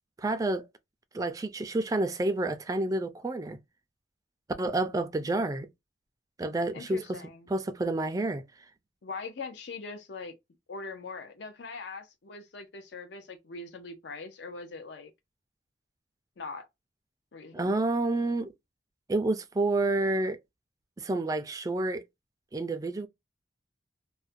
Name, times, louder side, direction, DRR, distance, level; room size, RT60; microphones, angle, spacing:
voice 1, 0.2-0.6 1.1-3.6 4.6-5.7 6.4-7.2 7.5-8.4 17.5-18.5 19.1-20.4 21.0-22.0 22.5-23.1, right 2 dB, 20° right, 0.3 m, -29 dB
voice 2, 6.7-7.5 9.0-10.3 10.7-15.1 16.4-16.7 17.3-17.8, left 4 dB, 65° left, 0.5 m, -41 dB
2.4 x 2.1 x 2.4 m
head